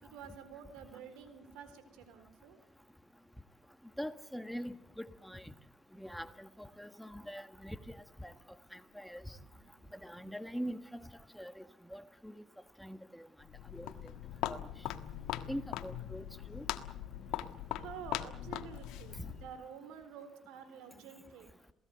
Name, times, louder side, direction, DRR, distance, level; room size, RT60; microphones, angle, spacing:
voice 1, 0.0-2.6 9.4-10.3 17.8-21.5, right 7 dB, 85° right, 11 dB, 4.0 m, -50 dB
voice 2, 4.0-5.5 5.9-8.3 8.7-9.4 9.9-11.1 11.3-11.6 11.9-12.4 12.8-13.3 13.7-13.9 14.4-14.6 15.5-16.6, equal, ahead, 10 dB, 1.4 m, -43 dB
Walk footsteps, 13.4-19.6, left 12 dB, 80° left, 1.5 m, -41 dB
27.5 x 18.0 x 8.0 m, 0.76 s
cardioid pair, 90°, 0 cm